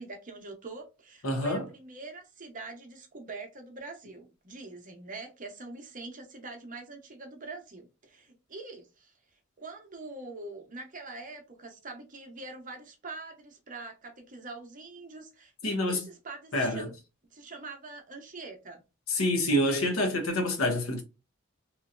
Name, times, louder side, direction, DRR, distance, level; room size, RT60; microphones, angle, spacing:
voice 1, 0.0-9.1 9.6-16.9 17.3-18.8, right 3 dB, 40° right, 0.8 m, -44 dB
voice 2, 1.2-1.7 15.6-16.0 16.5-16.9 19.1-21.0, left 1 dB, 80° left, 0.9 m, -27 dB
3.0 x 2.7 x 2.4 m
head